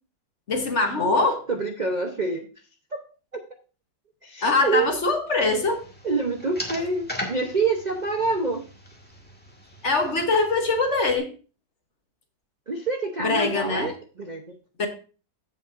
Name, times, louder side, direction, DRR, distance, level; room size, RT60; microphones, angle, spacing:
voice 1, 0.5-1.5 4.4-5.8 9.8-11.3 13.2-13.9 14.8-14.9, left 3 dB, 45° left, 5 dB, 1.3 m, -23 dB
voice 2, 1.5-2.5 3.3-3.4 4.2-4.9 6.0-8.6 12.7-14.6, right 3 dB, 50° right, 4 dB, 0.5 m, -26 dB
sound 1, 5.4-11.2, equal, 5° left, 1.5 m, -39 dB
15.0 x 5.5 x 2.5 m, 0.35 s
omnidirectional pair, 2.0 m